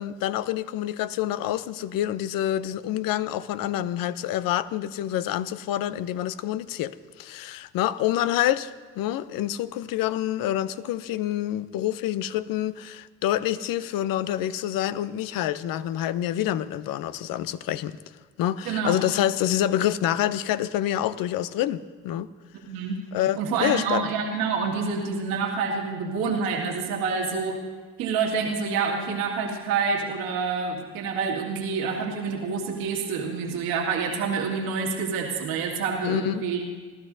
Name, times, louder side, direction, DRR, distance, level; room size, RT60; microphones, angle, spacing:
voice 1, 0.0-18.0 18.4-22.3 23.1-24.1 36.0-36.4, left 12 dB, 70° left, 15 dB, 0.7 m, -27 dB
voice 2, 18.6-19.0 22.7-23.0 23.4-27.6 28.0-36.6, right 5 dB, 85° right, -1 dB, 2.1 m, -27 dB
29.0 x 12.5 x 2.7 m, 1.5 s
supercardioid pair, 60°, 35 cm